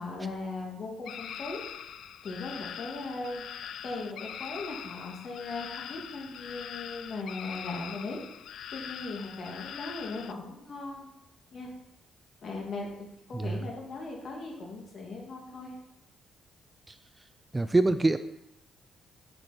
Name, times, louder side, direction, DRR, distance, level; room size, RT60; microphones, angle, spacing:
voice 1, 0.0-1.6 2.2-3.4 3.8-8.2 8.7-11.1 11.5-11.7 12.4-15.7, left 3 dB, 55° left, -1 dB, 2.6 m, -38 dB
sound 1, 1.0-10.3, left 9 dB, 70° left, 0.4 m, -42 dB
voice 2, 17.5-18.2, right 2 dB, 20° right, 11 dB, 0.4 m, -25 dB
9.6 x 6.0 x 4.4 m, 0.86 s
cardioid pair, 90°, 0 cm